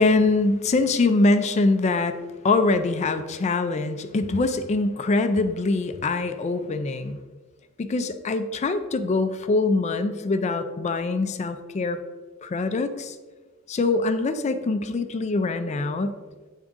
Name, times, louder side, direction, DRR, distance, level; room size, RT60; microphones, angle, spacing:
voice 1, 0.0-2.2 2.4-7.2 7.8-12.0 12.4-13.2 13.7-16.2, left 3 dB, 30° left, 9 dB, 0.3 m, -23 dB
7.8 x 3.6 x 3.5 m, 1.3 s
head